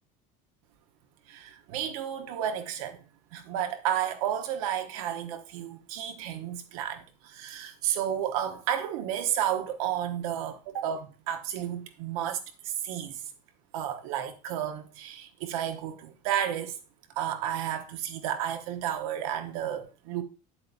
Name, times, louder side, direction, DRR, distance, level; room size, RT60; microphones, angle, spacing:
voice 1, 1.3-3.0 3.3-13.2 13.7-16.8 17.2-20.2, right 10 dB, 85° right, 1.2 m, -32 dB
8.3 x 7.7 x 2.6 m
cardioid pair, 165°, 18 cm